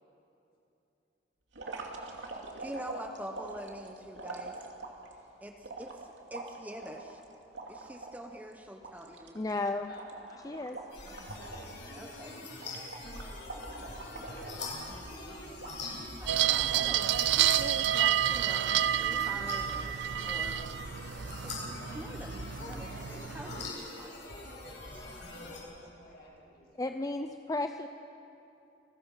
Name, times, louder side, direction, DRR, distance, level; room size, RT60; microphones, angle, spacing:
sound 1, 1.5-5.1 5.6-8.2 8.5-8.6 8.8-11.8 12.0-12.3 12.6-15.1 15.6-16.1 16.5-17.2 17.7-18.3 18.7-19.2, right 3 dB, 85° right, 2.7 m, -44 dB
voice 1, 2.6-4.6 5.4-7.2 7.7-9.4 11.9-12.5 16.2-20.6 21.4-24.1, right 1 dB, 10° right, 3 dB, 1.0 m, -45 dB
voice 2, 9.3-9.9 10.4-10.8 26.8-27.9, left 2 dB, 20° left, 7 dB, 0.6 m, -33 dB
voice 3, 9.9-10.9 12.2-12.3 12.6-14.9 23.9-27.2, equal, 55° left, -3 dB, 7.2 m, -56 dB
sound 2, 10.9-25.6, left 2 dB, 80° left, 7.2 m, -43 dB
sound 3, 16.3-23.7, right 11 dB, 70° right, 0.4 m, -30 dB
29.5 x 20.5 x 5.7 m, 2.9 s
head